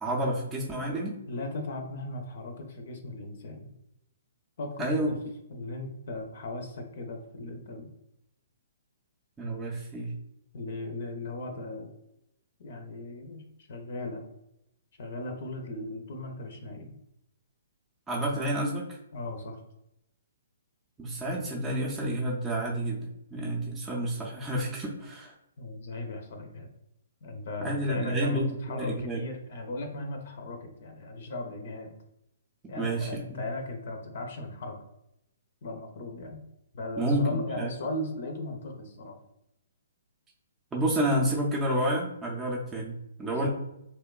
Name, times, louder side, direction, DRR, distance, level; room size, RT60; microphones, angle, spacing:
voice 1, 0.0-1.2 4.8-5.1 9.4-10.1 18.1-18.8 21.0-25.3 27.6-29.2 32.8-33.4 37.0-37.3 37.6-37.7 40.7-43.5, right 1 dB, 15° right, -4 dB, 0.4 m, -29 dB
voice 2, 1.3-3.7 4.6-5.2 5.5-7.9 10.5-11.9 12.6-14.2 15.0-16.9 19.1-19.6 25.6-26.7 27.2-31.9 32.7-34.7 35.6-36.4 36.7-39.2 43.3-43.5, left 2 dB, 60° left, 4 dB, 0.5 m, -37 dB
2.8 x 2.1 x 2.3 m, 0.82 s
hypercardioid pair, 130°, 0 cm